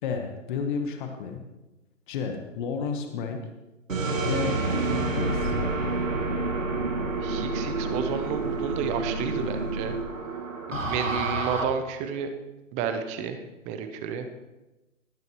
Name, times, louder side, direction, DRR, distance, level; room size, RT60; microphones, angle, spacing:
voice 1, 0.0-1.4 2.1-3.4 4.2-5.5 10.7-11.2, left 5 dB, 40° left, 5 dB, 1.3 m, -32 dB
sound 1, 3.9-11.6, right 3 dB, 85° right, 1.9 m, -28 dB
voice 2, 7.2-9.9 10.7-12.3 12.7-13.4 13.7-14.3, right 7 dB, 20° right, 8 dB, 0.8 m, -31 dB
18.5 x 9.6 x 3.1 m, 1.0 s
figure-of-eight pair, 125°, 38 cm